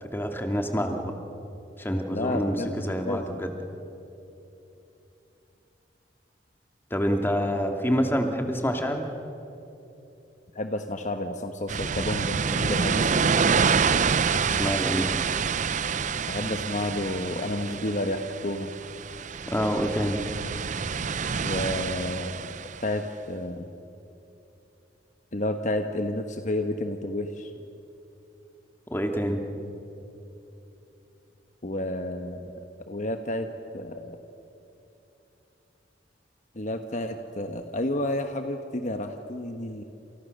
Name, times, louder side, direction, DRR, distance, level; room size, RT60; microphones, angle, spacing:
voice 1, 0.1-1.1 1.8-3.5 6.9-9.1 14.2-15.2 19.4-20.3 28.9-29.4, equal, 10° left, 4 dB, 2.4 m, -27 dB
voice 2, 2.1-2.7 3.0-3.4 10.5-13.7 16.3-18.7 21.4-23.7 25.3-27.5 31.6-32.5 32.9-33.5 33.7-34.2 36.5-39.8, left 1 dB, 45° left, 6 dB, 1.2 m, -31 dB
sound 1, 11.7-22.9, right 6 dB, 45° right, 0.6 m, -27 dB
29.0 x 28.0 x 6.7 m, 2.9 s
head